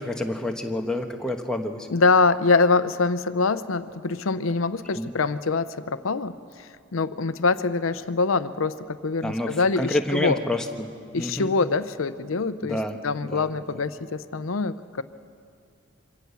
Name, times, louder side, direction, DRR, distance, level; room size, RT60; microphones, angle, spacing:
voice 1, 0.0-1.9 4.9-5.1 9.2-10.9 11.2-11.5 12.6-13.0 13.3-13.5, left 1 dB, 5° left, 2 dB, 1.1 m, -28 dB
voice 2, 1.9-10.4 11.1-12.8 13.0-15.0, left 4 dB, 90° left, 13 dB, 0.7 m, -24 dB
24.5 x 17.5 x 7.0 m, 2.2 s
head